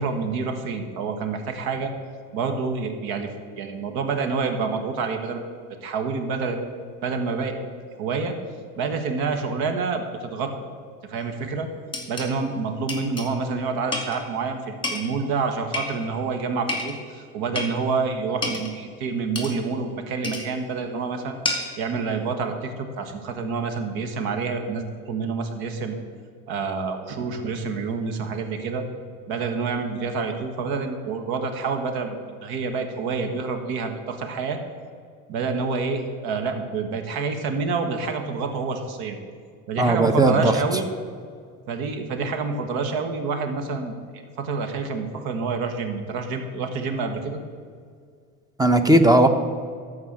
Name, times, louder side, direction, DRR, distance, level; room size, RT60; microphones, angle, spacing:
voice 1, 0.0-1.9 2.3-3.3 3.6-5.4 5.8-6.6 7.0-7.5 8.0-8.3 8.8-10.5 11.1-11.7 12.1-21.4 21.8-26.0 26.5-28.9 29.3-34.6 35.3-39.2 39.7-40.9 41.7-43.9 44.4-47.4, right 4 dB, 70° right, 6 dB, 1.6 m, -27 dB
sound 1, 11.2-11.3 11.9-12.3 12.9-13.3 13.9-14.2 14.8-15.1 15.7-16.2 16.7-17.0 17.6-17.8 18.4-18.7 19.4-19.6 20.2-20.5 21.5-21.8, left 2 dB, 10° left, 2.5 m, -30 dB
voice 2, 39.8-40.5 48.6-49.3, right 1 dB, 10° right, 9 dB, 0.9 m, -17 dB
13.0 x 4.8 x 7.3 m, 2.1 s
supercardioid pair, 95°, 39 cm